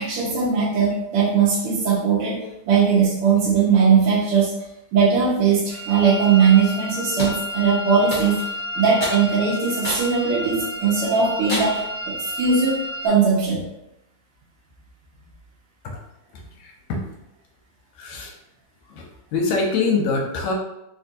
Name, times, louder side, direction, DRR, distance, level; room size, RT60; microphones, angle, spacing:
voice 1, 0.0-4.5 4.9-8.4 8.7-13.6, right 6 dB, 75° right, -5 dB, 1.3 m, -19 dB
sound 1, 5.7-13.1, equal, 70° left, 0.7 m, -31 dB
sound 2, 7.2-7.4 8.1-8.5 9.0-9.2 9.8-10.1 10.6-10.7 11.5-11.9, left 1 dB, 45° left, 1.2 m, -28 dB
voice 2, 16.6-17.0 18.0-18.3 18.9-19.1 19.3-20.5, left 4 dB, 85° left, 0 dB, 1.9 m, -24 dB
4.4 x 2.5 x 2.6 m, 0.85 s
omnidirectional pair, 3.3 m